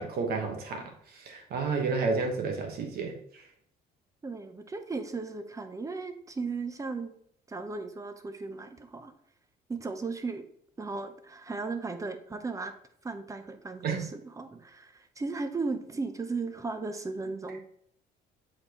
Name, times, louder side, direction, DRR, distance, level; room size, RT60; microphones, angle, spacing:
voice 1, 0.0-3.2 13.8-14.1, right 4 dB, 65° right, 3 dB, 1.2 m, -31 dB
voice 2, 4.2-7.1 7.5-9.1 9.7-10.4 10.8-12.7 13.0-17.6, right 3 dB, 20° right, 8 dB, 0.7 m, -36 dB
7.6 x 4.3 x 2.9 m, 0.68 s
cardioid pair, 110°, 17 cm